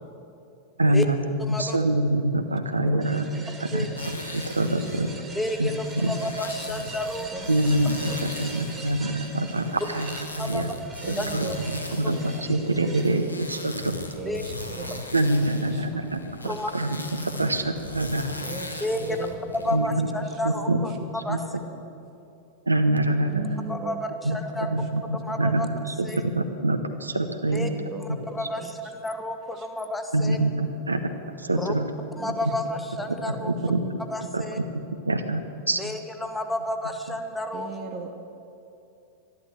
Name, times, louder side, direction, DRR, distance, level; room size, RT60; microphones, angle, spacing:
voice 1, 0.8-1.2 1.5-3.2 3.6-3.9 4.3-5.1 5.6-5.7 6.0-6.1 7.5-10.2 10.5-10.7 11.1-11.5 12.0-14.0 15.1-16.2 16.7-17.0 17.4-18.3 19.7-20.1 20.4-20.9 21.3-21.4 22.7-23.6 24.2-25.7 26.0-27.7 30.1-31.1 31.4-31.9 33.3-33.8 34.3-34.4 35.1-36.0, right 1 dB, 80° right, 7 dB, 0.9 m, -25 dB
voice 2, 1.5-1.8 3.7-3.9 5.3-7.3 10.4-10.7 11.2-11.3 12.0-12.1 14.3-14.4 16.5-16.7 18.8-19.2 19.6-20.9 21.2-21.4 23.7-24.7 25.2-25.7 26.0-26.2 27.5-27.7 28.3-28.6 29.0-30.4 31.5-31.7 32.2-33.5 34.1-34.6 35.7-37.7, left 1 dB, 5° left, 6 dB, 1.2 m, -31 dB
voice 3, 2.7-4.0 4.6-4.7 5.2-5.6 7.1-7.5 8.1-8.3 8.9-9.1 11.0-12.0 14.1-15.1 15.7-16.1 16.4-16.6 18.4-19.6 20.0-20.4 20.7-21.0 23.3-24.0 24.4-24.9 27.5-28.9 29.6-29.7 32.1-32.4 32.7-33.5 37.5-38.1, right 5 dB, 30° right, 3 dB, 1.2 m, -39 dB
sound 1, 3.0-13.3, right 3 dB, 15° right, 2.0 m, -43 dB
sound 2, 3.9-19.8, left 2 dB, 85° left, 1.3 m, -38 dB
12.5 x 12.0 x 7.7 m, 2.6 s
figure-of-eight pair, 90°, 0 cm